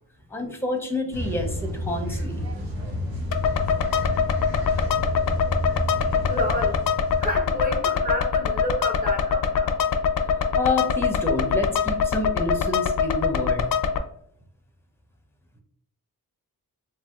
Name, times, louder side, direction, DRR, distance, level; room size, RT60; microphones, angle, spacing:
voice 1, 0.3-2.4 10.6-13.7, left 2 dB, 5° left, 3 dB, 0.7 m, -28 dB
sound 1, 1.1-7.9 10.5-10.6, left 1 dB, 70° right, 1.1 m, -30 dB
sound 2, 3.3-14.0, left 6 dB, 60° left, 0.4 m, -24 dB
voice 2, 6.2-6.8 7.2-9.8, equal, 25° right, 1 dB, 0.8 m, -30 dB
3.3 x 2.7 x 2.3 m, 0.69 s
wide cardioid pair, 55°, 38 cm